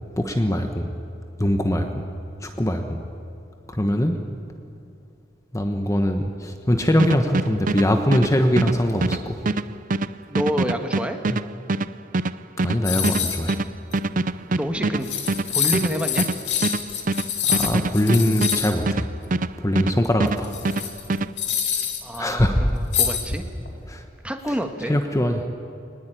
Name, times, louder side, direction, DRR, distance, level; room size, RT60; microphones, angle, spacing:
voice 1, 0.2-0.9 1.4-2.1 2.4-3.0 3.7-4.2 5.5-9.4 11.3-11.4 12.6-13.5 17.5-19.1 19.6-20.5 22.1-22.7 23.9-24.0 24.9-25.4, left 1 dB, 20° left, 5 dB, 1.2 m, -22 dB
sound 1, 7.0-20.0 20.2-21.3, right 2 dB, 45° right, 0.6 m, -24 dB
voice 2, 10.3-11.2 14.5-15.1 15.5-16.3 22.0-23.4 24.2-25.0, equal, 5° right, 5 dB, 1.6 m, -28 dB
sound 2, 12.8-13.5 13.9-14.0 14.7-14.8 15.0-18.7 20.3-22.2 22.9-23.7, left 8 dB, 70° left, 2.9 m, -26 dB
23.0 x 20.0 x 9.3 m, 2.8 s
head